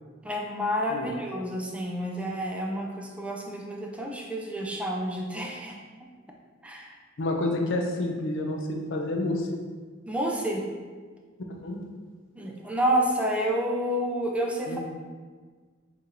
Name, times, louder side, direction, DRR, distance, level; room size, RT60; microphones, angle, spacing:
voice 1, 0.2-5.8 6.6-6.9 10.1-10.6 12.4-14.8, equal, 5° right, 0 dB, 0.4 m, -29 dB
voice 2, 7.2-9.5 11.6-11.8 14.7-14.8, left 2 dB, 65° left, 2 dB, 0.5 m, -29 dB
5.5 x 2.4 x 2.7 m, 1.5 s
head